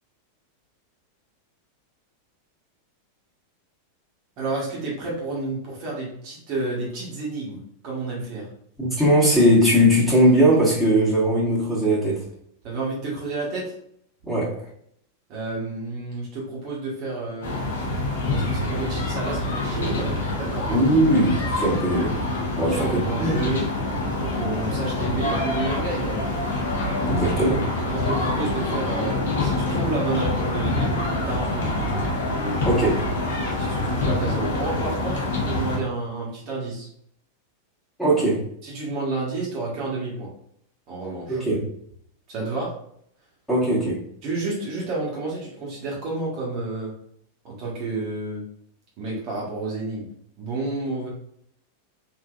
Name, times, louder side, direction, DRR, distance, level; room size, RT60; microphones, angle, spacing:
voice 1, 4.4-8.5 12.6-13.7 15.3-17.6 18.3-20.7 22.7-23.6 24.2-26.4 27.9-31.0 31.3-31.7 32.3-32.7 33.6-36.9 38.6-40.3 40.9-41.4 42.3-42.7 44.2-46.9 47.4-48.4 49.0-50.1 50.4-51.1, right 3 dB, 40° right, -4 dB, 1.1 m, -30 dB
voice 2, 8.8-12.2 14.2-14.6 20.7-22.2 22.6-23.3 27.1-27.7 31.8-31.9 32.6-33.1 38.0-38.4 41.3-41.7 43.5-44.0, equal, 5° left, -7 dB, 1.4 m, -20 dB
sound 1, 17.4-35.8, left 2 dB, 60° left, 0.8 m, -26 dB
3.5 x 2.6 x 2.4 m, 0.67 s
figure-of-eight pair, 90°, 0 cm